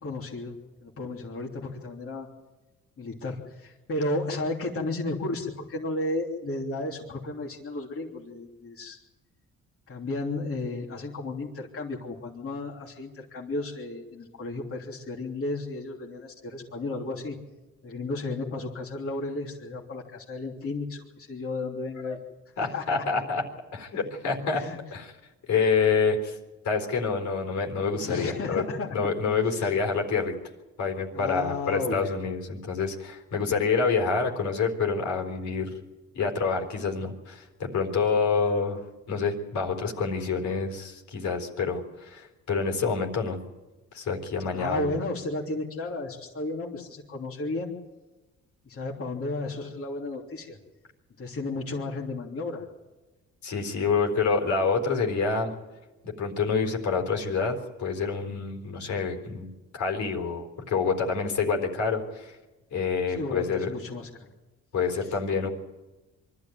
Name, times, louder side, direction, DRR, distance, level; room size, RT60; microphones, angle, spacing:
voice 1, 0.0-2.3 3.0-9.0 9.9-17.4 17.8-22.2 22.6-23.0 24.2-24.8 27.9-28.9 29.6-29.7 31.1-32.2 44.5-47.7 48.6-50.6 51.2-52.6 63.1-64.1, left 2 dB, 50° left, -3 dB, 3.2 m, -33 dB
voice 2, 22.6-23.4 23.7-24.6 24.9-25.2 25.5-26.4 26.6-28.6 28.9-30.3 30.8-35.7 36.1-38.8 39.1-43.4 43.9-45.0 53.4-55.5 56.0-62.4 62.7-63.7 64.7-65.5, left 5 dB, 70° left, 2 dB, 4.1 m, -27 dB
24.0 x 13.0 x 9.3 m, 1.1 s
cardioid pair, 90°, 30 cm